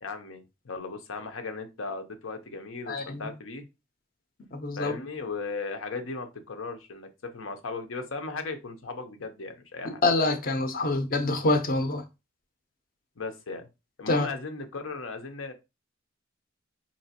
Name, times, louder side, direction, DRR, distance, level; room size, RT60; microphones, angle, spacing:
voice 1, 0.0-3.6 4.8-10.0 10.8-10.9 13.2-13.7 14.0-15.5, left 4 dB, 90° left, 0.7 m, -37 dB
voice 2, 2.9-3.2 4.5-4.9 10.0-12.0 14.1-14.3, left 2 dB, 45° left, 0.6 m, -26 dB
4.1 x 2.9 x 2.8 m
head